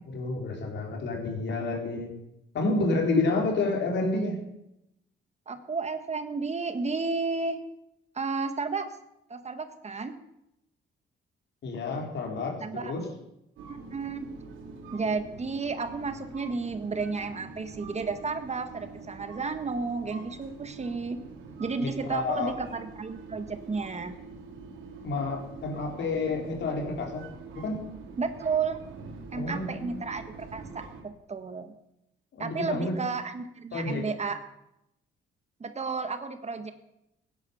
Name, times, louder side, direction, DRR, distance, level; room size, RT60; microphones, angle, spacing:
voice 1, 0.1-2.1 2.5-4.4 11.6-13.1 21.8-22.6 25.0-27.2 27.5-27.8 29.3-29.9 32.3-33.0 33.7-34.1, left 3 dB, 65° left, 1 dB, 4.2 m, -29 dB
voice 2, 5.5-7.6 8.1-8.9 9.3-10.1 12.6-12.9 13.7-14.2 14.9-21.2 21.6-24.2 28.2-28.8 29.3-31.7 32.4-34.4 35.6-36.7, right 4 dB, 35° right, 9 dB, 1.6 m, -32 dB
sound 1, 13.6-31.0, right 4 dB, 75° right, 3.1 m, -45 dB
16.5 x 10.5 x 7.1 m, 0.85 s
cardioid pair, 90°, 20 cm